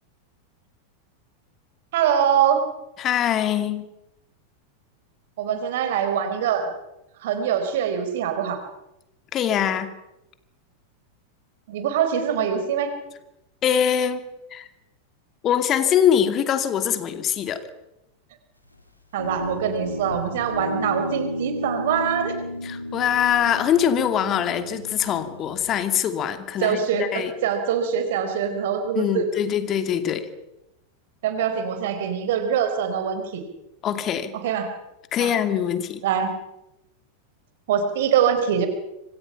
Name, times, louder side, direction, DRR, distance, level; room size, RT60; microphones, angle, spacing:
voice 1, 1.9-2.6 5.4-6.7 7.2-8.6 11.7-12.9 19.1-22.4 26.6-29.3 31.2-33.4 34.3-34.7 35.2-35.3 36.0-36.3 37.7-38.7, right 8 dB, 55° right, 8 dB, 4.4 m, -23 dB
voice 2, 3.0-3.8 9.3-9.9 13.6-14.2 14.5-14.7 15.4-17.6 22.6-27.3 28.9-30.3 33.8-34.3 35.1-36.0, left 9 dB, 30° left, 9 dB, 2.6 m, -23 dB
Guitar, 19.2-25.7, equal, 90° left, 3.8 m, -32 dB
27.0 x 26.0 x 5.8 m, 0.90 s
figure-of-eight pair, 90°, 0 cm